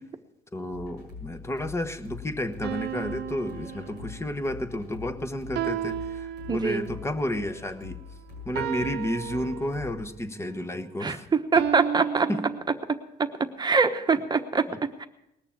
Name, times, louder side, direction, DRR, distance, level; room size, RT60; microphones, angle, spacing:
voice 1, 0.5-8.1 8.4-11.3 12.3-12.5 14.7-14.8, left 1 dB, 15° left, 8 dB, 1.1 m, -31 dB
sound 1, 0.7-10.1, left 5 dB, 85° left, 6.4 m, -44 dB
sound 2, 2.6-4.4 5.5-7.0 8.5-10.1 11.5-12.6, right 11 dB, 80° right, 0.8 m, -33 dB
voice 2, 6.5-6.9 11.0-11.2 11.5-12.3 12.9-13.3 13.6-14.7 15.0-15.1, right 4 dB, 25° right, 8 dB, 1.1 m, -23 dB
19.5 x 6.8 x 8.6 m, 0.85 s
cardioid pair, 110°, 17 cm